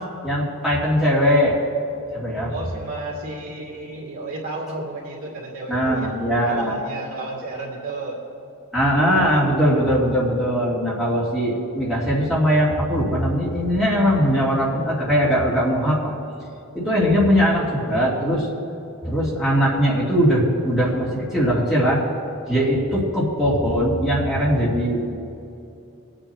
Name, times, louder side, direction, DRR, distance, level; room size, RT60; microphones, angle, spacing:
voice 1, 0.2-1.6 2.1-2.5 5.7-6.8 8.7-16.1 16.7-18.5 19.0-22.0 22.5-25.2, equal, ahead, -8 dB, 2.6 m, -20 dB
voice 2, 2.4-8.2, right 2 dB, 75° right, -3 dB, 2.5 m, -32 dB
20.5 x 8.9 x 2.9 m, 2.7 s
head